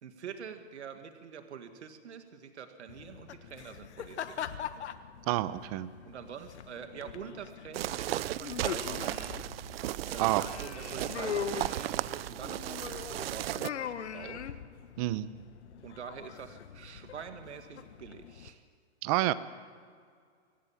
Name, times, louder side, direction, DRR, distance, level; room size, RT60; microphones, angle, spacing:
voice 1, 0.0-4.7 6.0-9.2 10.1-14.4 15.8-18.6, right 7 dB, 90° right, 7 dB, 2.0 m, -46 dB
sound 1, 2.9-18.5, left 8 dB, 85° left, 1.3 m, -42 dB
voice 2, 5.3-5.9 10.2-10.4 15.0-15.3 19.0-19.3, right 17 dB, 35° right, 15 dB, 0.9 m, -28 dB
sound 2, 7.7-13.7, right 14 dB, 60° right, 0.6 m, -35 dB
24.5 x 17.5 x 7.4 m, 2.1 s
hypercardioid pair, 150°, 33 cm